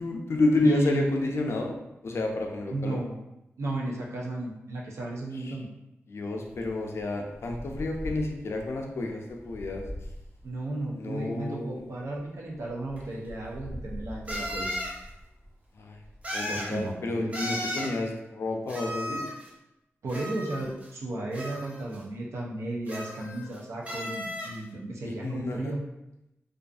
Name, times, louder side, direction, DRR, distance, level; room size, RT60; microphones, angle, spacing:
voice 1, 0.0-1.8 2.0-3.0 5.3-5.6 6.1-9.9 10.9-11.8 15.8-16.0 16.3-19.3 25.0-25.7, left 2 dB, 65° left, 2 dB, 0.4 m, -30 dB
voice 2, 0.6-1.1 2.7-3.2 3.6-5.7 10.4-14.7 16.5-17.3 20.0-25.8, right 2 dB, 80° right, -2 dB, 0.4 m, -34 dB
Wind, 6.4-16.3, equal, 65° right, 1.0 m, -44 dB
sound 1, 13.0-13.1 14.3-15.0 16.2-16.8 17.3-18.0 18.7-19.5 20.1-20.9 21.3-22.0 22.9-23.6 23.9-24.6, equal, 30° right, 0.6 m, -35 dB
2.5 x 2.3 x 2.3 m, 0.90 s
wide cardioid pair, 155°, 5 cm